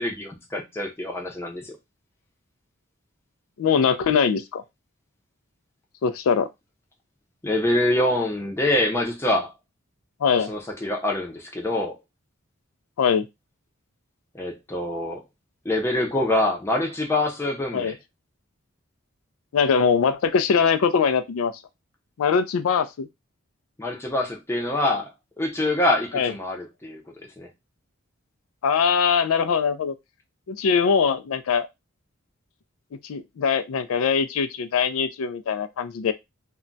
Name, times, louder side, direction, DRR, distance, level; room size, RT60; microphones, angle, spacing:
voice 1, 0.0-1.7 7.4-9.5 10.5-11.9 14.3-15.2 15.6-17.9 23.8-25.1 25.4-27.5, left 1 dB, 10° left, 0.5 m, -25 dB
voice 2, 3.6-4.6 6.0-6.5 10.2-10.5 13.0-13.3 17.7-17.9 19.5-21.5 22.2-23.1 26.1-26.3 28.6-29.9 30.5-31.7 33.0-36.1, left 6 dB, 80° left, 0.4 m, -22 dB
2.3 x 2.1 x 3.8 m
head